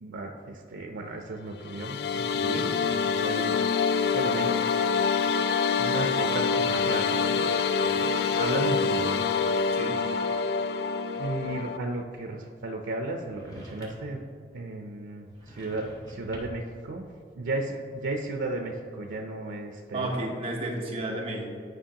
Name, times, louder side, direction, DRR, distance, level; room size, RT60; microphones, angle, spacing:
voice 1, 0.0-3.8 4.1-5.0 5.8-7.4 7.8-9.8 11.1-14.2 14.5-17.1 17.3-20.3, right 2 dB, 85° right, 3 dB, 0.5 m, -35 dB
sound 1, 1.6-11.8, left 5 dB, 60° left, 0.3 m, -26 dB
sound 2, 13.3-14.2 15.3-16.7, equal, 20° left, 1.1 m, -45 dB
voice 2, 19.9-21.5, right 1 dB, 30° right, -2 dB, 1.0 m, -32 dB
9.9 x 5.1 x 2.9 m, 2.4 s
head